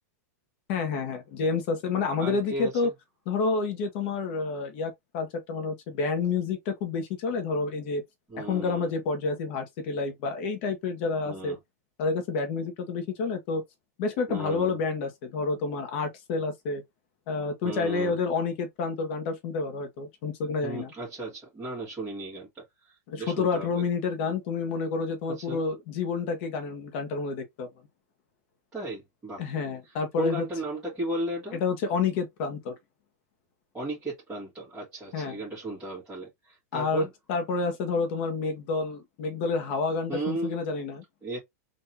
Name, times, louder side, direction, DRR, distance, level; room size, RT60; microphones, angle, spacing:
voice 1, 0.7-2.9 3.3-8.0 8.4-11.6 12.0-13.6 14.0-16.8 17.3-20.9 23.1-27.7 29.4-30.5 31.5-32.7 35.1-35.4 36.7-41.0, left 4 dB, 45° left, 1.2 m, -29 dB
voice 2, 2.2-2.9 8.3-9.0 11.2-11.6 14.3-14.8 17.6-18.2 20.6-23.8 25.4-25.6 28.7-29.4 29.9-31.6 33.7-37.1 40.1-40.6 41.2-41.4, right 2 dB, 10° right, 1.8 m, -35 dB
3.8 x 2.8 x 2.7 m
supercardioid pair, 160°, 9 cm